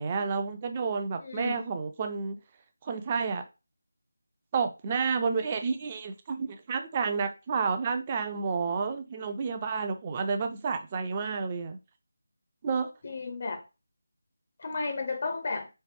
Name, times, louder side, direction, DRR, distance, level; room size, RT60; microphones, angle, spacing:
voice 1, 0.0-2.4 2.8-3.4 4.5-11.8 12.6-12.9, right 5 dB, 25° right, 0.4 m, -30 dB
voice 2, 1.2-1.7 13.0-13.6 14.6-15.7, left 3 dB, 45° left, 0.5 m, -33 dB
3.1 x 2.0 x 3.4 m
figure-of-eight pair, 165°, 0 cm